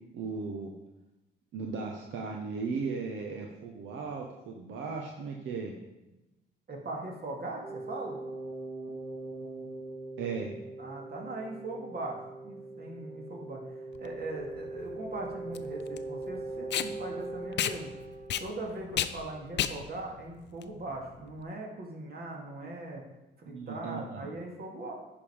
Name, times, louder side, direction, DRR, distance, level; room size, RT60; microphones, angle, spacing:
voice 1, 0.1-0.7 1.5-5.7 10.2-10.5 23.5-24.3, right 4 dB, 80° right, 1 dB, 1.1 m, -36 dB
voice 2, 6.7-8.2 10.8-12.2 12.4-17.9 18.4-23.0 23.4-24.9, right 2 dB, 55° right, 0 dB, 2.4 m, -40 dB
sound 1, 7.6-19.2, right 2 dB, 35° right, 1.9 m, -41 dB
Packing tape duct tape, 13.9-21.4, left 10 dB, 65° left, 0.5 m, -34 dB
10.0 x 5.4 x 5.1 m, 0.99 s
cardioid pair, 80°, 20 cm